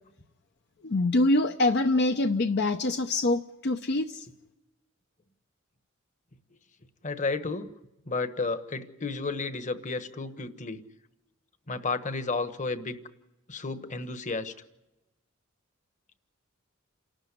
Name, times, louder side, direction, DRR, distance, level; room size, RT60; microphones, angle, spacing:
voice 1, 0.8-4.3, left 2 dB, 55° left, 7 dB, 0.7 m, -25 dB
voice 2, 7.0-7.7 8.0-10.8 11.7-13.0 13.5-14.5, left 3 dB, 40° left, 10 dB, 1.3 m, -32 dB
28.5 x 13.0 x 9.8 m, 0.97 s
head